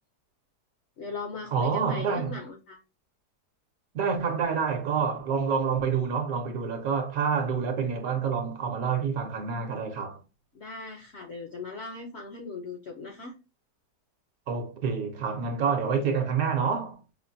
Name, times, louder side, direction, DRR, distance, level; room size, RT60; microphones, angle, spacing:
voice 1, 1.0-2.8 10.5-13.3, left 3 dB, 65° left, 0.7 m, -38 dB
voice 2, 1.5-2.4 3.9-10.2 14.5-17.0, right 6 dB, 65° right, 1.1 m, -27 dB
5.6 x 2.2 x 2.6 m
omnidirectional pair, 1.8 m